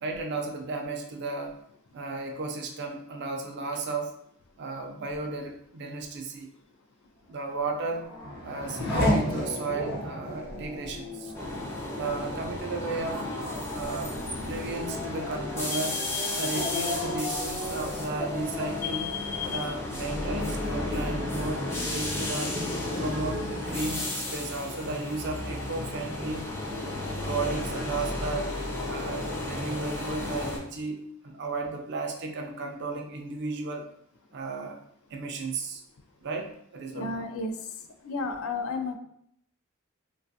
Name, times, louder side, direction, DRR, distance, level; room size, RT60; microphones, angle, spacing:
voice 1, 0.0-1.6 1.9-4.1 4.6-6.5 7.3-8.1 8.4-11.3 11.9-13.3 13.7-19.2 19.5-22.5 23.0-26.5 27.2-28.5 28.8-33.9 34.3-34.8 35.1-35.8 36.2-37.2, right 3 dB, 50° right, 3 dB, 0.4 m, -34 dB
Race car auto racing / Accelerating revving vroom, 7.5-20.7 21.1-21.8, left 1 dB, 45° left, 1.0 m, -34 dB
sound 1, 11.3-30.6, left 2 dB, 10° left, 0.5 m, -33 dB
sound 2, 11.3-28.0, left 1 dB, 65° right, 0.8 m, -49 dB
voice 2, 36.9-37.5 38.0-39.0, left 3 dB, 65° left, 6 dB, 0.4 m, -32 dB
3.2 x 2.3 x 2.6 m, 0.71 s
head